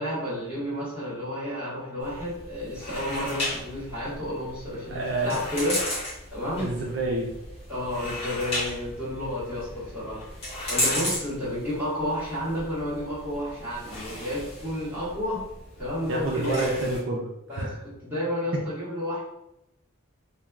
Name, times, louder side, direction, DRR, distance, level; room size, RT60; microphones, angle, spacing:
voice 1, 0.0-5.8 6.3-6.7 7.7-10.2 10.7-15.4 15.8-16.6 17.5-17.7 18.0-19.2, left 1 dB, 10° right, -11 dB, 1.4 m, -31 dB
sound 1, 2.0-17.0, left 1 dB, 30° left, 1.0 m, -35 dB
voice 2, 4.9-5.4 6.6-7.3 16.1-17.8, right 2 dB, 55° right, -2 dB, 0.4 m, -28 dB
3.2 x 2.2 x 2.3 m, 0.86 s
head